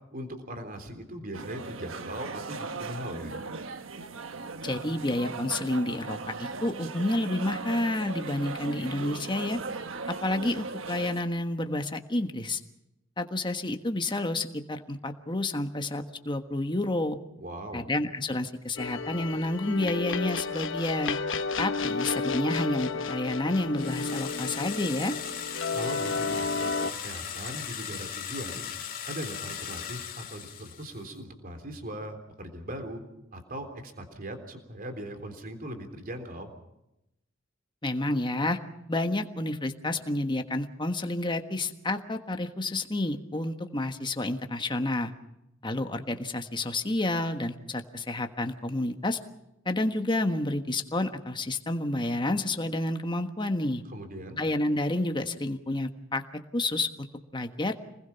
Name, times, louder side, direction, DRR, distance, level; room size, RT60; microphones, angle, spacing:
voice 1, 0.1-3.3 17.4-17.8 25.7-28.6 29.0-33.0 33.3-36.5 53.9-54.4, right 1 dB, 45° right, 6 dB, 3.6 m, -39 dB
sound 1, 1.3-11.2, right 4 dB, 80° right, 1.3 m, -38 dB
voice 2, 4.6-9.6 10.2-12.6 13.2-17.2 17.7-21.2 21.6-25.1 37.8-38.6 38.9-45.1 45.6-49.2 49.6-53.8 54.4-56.2 56.5-57.1 57.3-57.7, left 1 dB, 25° left, 6 dB, 1.4 m, -29 dB
sound 2, 18.8-26.9, left 4 dB, 70° left, 1.3 m, -32 dB
sound 3, 23.8-31.1, left 8 dB, 45° left, 2.6 m, -38 dB
27.0 x 20.5 x 5.7 m, 0.87 s
head